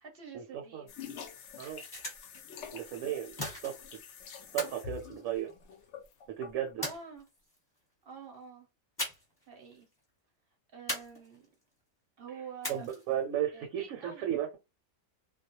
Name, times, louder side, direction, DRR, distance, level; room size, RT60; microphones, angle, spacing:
voice 1, 0.0-0.9 6.8-7.2 8.0-8.7 9.5-9.9 10.7-11.4 12.2-12.8 13.5-14.2, right 6 dB, 55° right, 0.7 m, -47 dB
sound 1, 0.9-6.7, left 7 dB, 65° left, 0.7 m, -47 dB
sound 2, 1.5-2.4 3.4-4.0 4.6-5.8 6.8-7.6 9.0-9.4 9.7-9.8 10.9-11.6 12.6-13.2, equal, 15° left, 1.0 m, -39 dB
voice 2, 2.7-3.4 3.6-4.0 4.5-5.5 6.4-6.9 12.7-14.6, right 11 dB, 75° right, 0.9 m, -34 dB
2.3 x 2.1 x 2.8 m
omnidirectional pair, 1.5 m